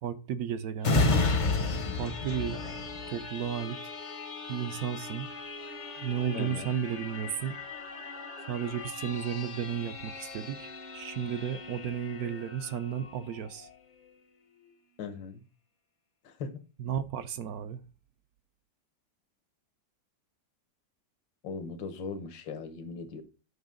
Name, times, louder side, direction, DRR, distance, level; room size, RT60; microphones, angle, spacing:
voice 1, 0.0-1.2 2.0-2.6 3.1-3.9 4.5-5.3 6.0-7.6 8.5-13.7 16.8-17.8, right 8 dB, 65° right, 0.9 m, -33 dB
sound 1, 0.8-14.1 14.6-14.7, left 3 dB, 45° left, 0.6 m, -34 dB
voice 2, 6.3-6.7 15.0-15.4 16.2-16.6 21.4-23.2, left 5 dB, 85° left, 1.8 m, -39 dB
8.0 x 5.5 x 3.6 m
omnidirectional pair, 2.0 m